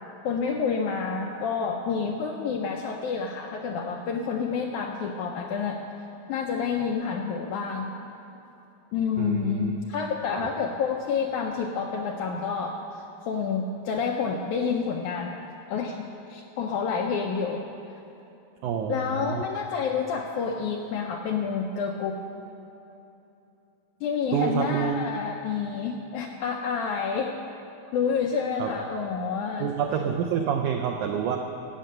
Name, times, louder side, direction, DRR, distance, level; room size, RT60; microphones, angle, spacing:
voice 1, 0.2-5.8 6.3-7.9 8.9-15.4 15.7-16.0 16.3-17.7 18.9-22.2 24.0-27.3 27.9-29.7, left 6 dB, 80° left, 2 dB, 1.8 m, -29 dB
voice 2, 9.2-9.7 10.3-10.5 18.6-19.4 24.3-25.0 28.6-28.7 29.6-31.4, right 7 dB, 90° right, 3 dB, 1.7 m, -27 dB
14.0 x 6.6 x 9.0 m, 3.0 s
omnidirectional pair, 4.2 m